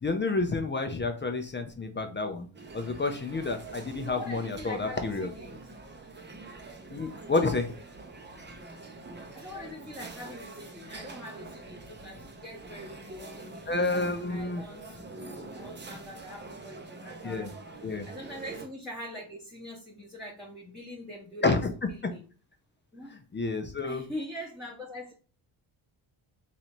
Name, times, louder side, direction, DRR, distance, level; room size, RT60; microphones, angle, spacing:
voice 1, 0.0-2.5 2.7-5.3 6.9-7.7 13.7-14.6 17.2-17.5 17.8-18.1 21.4-21.7 22.0-22.1 23.1-24.0, left 3 dB, 25° left, 0.5 m, -29 dB
sound 1, 2.5-18.7, right 3 dB, 20° right, 0.8 m, -45 dB
voice 2, 4.0-5.7 9.3-13.8 14.3-17.5 18.0-21.6 22.0-22.2 22.9-23.2 23.8-25.1, left 1 dB, ahead, 1.0 m, -43 dB
3.1 x 2.6 x 4.3 m
cardioid pair, 85°, 50 cm